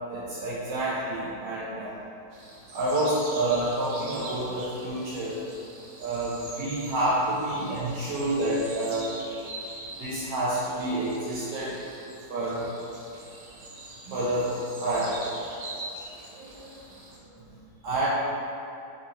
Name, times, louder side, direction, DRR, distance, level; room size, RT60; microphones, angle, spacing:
voice 1, 0.1-1.9 2.7-5.4 6.0-9.1 10.0-11.8 12.3-12.7 13.5-13.6 14.1-15.2 16.3-16.7 17.3-17.5 17.8-18.1, right 1 dB, 75° right, -9 dB, 1.2 m, -28 dB
sound 1, 2.3-17.2, right 2 dB, 60° right, 0.9 m, -43 dB
3.9 x 3.5 x 2.8 m, 2.7 s
omnidirectional pair, 1.8 m